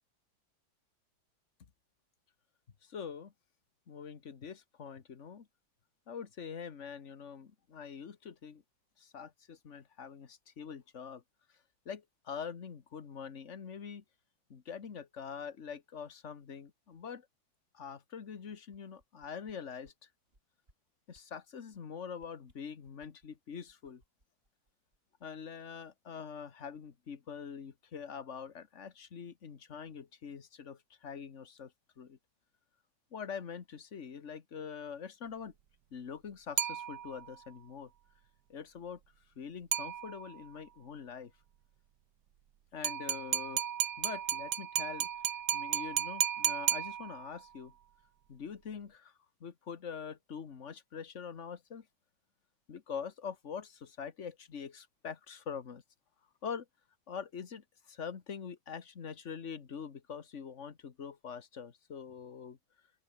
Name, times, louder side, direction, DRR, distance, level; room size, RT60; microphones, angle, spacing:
voice 1, 2.8-3.3 3.9-5.5 6.1-8.6 9.0-11.2 11.8-14.0 14.5-17.3 17.7-20.1 21.1-24.0 25.2-32.2 33.1-35.5 35.9-37.9 38.5-39.0 39.3-41.3 42.7-43.6 44.0-45.1 45.5-47.7 48.3-49.1 49.4-51.9 52.7-55.8 56.4-56.7 57.1-62.6, left 6 dB, 40° left, 1.6 m, -44 dB
sound 1, 18.5-19.5 19.8-20.0 20.3-20.7 21.1-21.3 21.6-21.8 22.2-23.3 23.7-25.3 25.6-25.7, right 1 dB, 25° right, 8.2 m, -69 dB
sound 2, 36.6-37.4 39.7-40.5 42.8-47.5, right 10 dB, 60° right, 1.5 m, -34 dB
open air
omnidirectional pair, 2.2 m